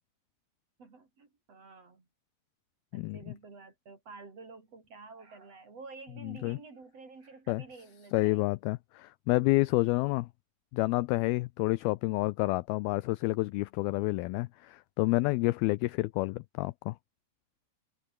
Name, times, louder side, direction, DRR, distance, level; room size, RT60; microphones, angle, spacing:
voice 1, 0.8-2.1 2.9-8.5, right 4 dB, 35° right, 5.3 m, -50 dB
voice 2, 6.2-6.6 7.5-7.6 8.1-10.3 10.7-17.0, left 21 dB, 85° left, 2.2 m, -29 dB
omnidirectional pair, 4.9 m